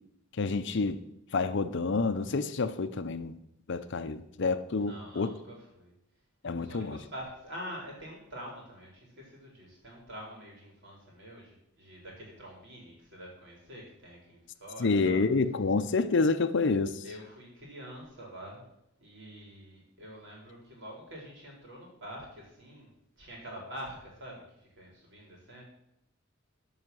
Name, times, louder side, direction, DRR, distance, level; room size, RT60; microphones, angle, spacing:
voice 1, 0.4-1.0 1.3-3.4 3.7-5.3 6.4-7.0 14.8-17.0, left 4 dB, 60° left, 0.6 m, -28 dB
voice 2, 4.8-5.9 6.5-8.9 9.2-15.2 17.0-18.6 19.0-22.9 23.2-25.6, equal, 60° right, 4.3 m, -46 dB
12.5 x 5.7 x 6.2 m
head